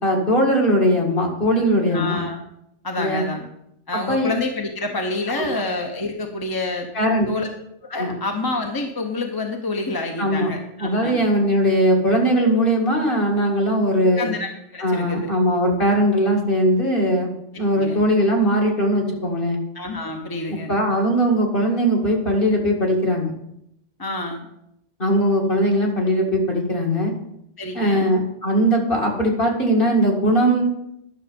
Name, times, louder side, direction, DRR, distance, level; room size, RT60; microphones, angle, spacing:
voice 1, 0.0-2.2 3.0-3.2 3.9-4.3 5.4-5.5 6.9-7.3 8.0-8.1 10.2-10.5 10.8-14.3 14.8-17.3 17.5-19.6 20.5-23.3 25.0-27.1 27.7-30.6, equal, 50° left, -1 dB, 2.4 m, -20 dB
voice 2, 1.9-2.4 2.8-3.5 3.9-6.9 7.3-7.5 7.8-11.2 14.0-15.3 17.7-18.0 19.7-20.7 24.0-24.5 27.6-28.1, left 2 dB, 20° left, 2 dB, 1.0 m, -28 dB
11.0 x 6.6 x 5.2 m, 0.78 s
omnidirectional pair, 1.2 m